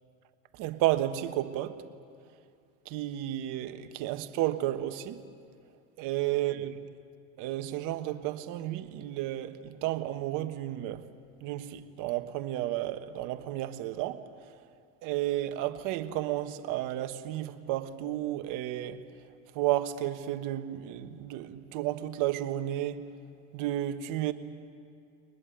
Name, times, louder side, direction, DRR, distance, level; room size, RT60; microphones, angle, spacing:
voice 1, 0.6-1.8 2.9-5.2 6.0-6.7 7.4-11.0 11.4-14.2 15.0-19.0 19.5-23.1 23.5-24.3, right 14 dB, 65° right, 1.4 m, -32 dB
23.0 x 20.5 x 9.2 m
supercardioid pair, 95°, 34 cm